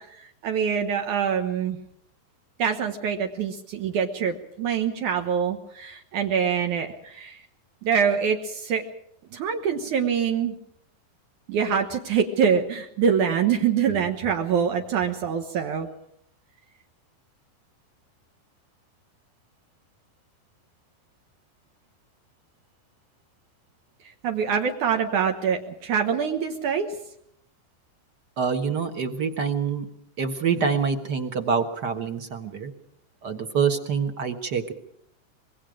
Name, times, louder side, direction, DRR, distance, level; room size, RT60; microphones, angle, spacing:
voice 1, 0.2-1.8 2.6-7.4 7.8-8.8 9.3-10.5 11.5-15.9 24.2-26.9, right 7 dB, 70° right, 4 dB, 2.7 m, -25 dB
voice 2, 28.4-29.9 30.2-32.7 33.2-34.7, right 6 dB, 45° right, 7 dB, 1.4 m, -26 dB
25.5 x 22.0 x 5.1 m, 0.70 s
omnidirectional pair, 3.8 m